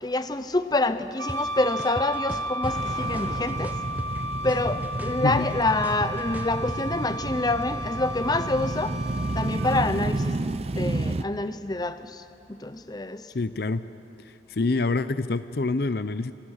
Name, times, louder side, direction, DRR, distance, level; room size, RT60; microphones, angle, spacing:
voice 1, 0.0-3.8 4.4-9.0 9.3-10.4 10.7-13.3, left 2 dB, 20° left, 11 dB, 0.7 m, -27 dB
Wind instrument woodwind instrument, 1.2-9.8, equal, 70° right, 1.4 m, -34 dB
sound 1, 1.3-1.4 1.8-2.7 3.1-4.2 4.5-6.8, equal, 10° right, 1.0 m, -36 dB
sound 2, 2.6-11.2, right 2 dB, 35° right, 0.5 m, -31 dB
voice 2, 5.2-5.5 13.3-13.8 14.5-16.3, left 3 dB, 60° left, 13 dB, 0.6 m, -26 dB
26.0 x 26.0 x 6.5 m, 2.7 s
head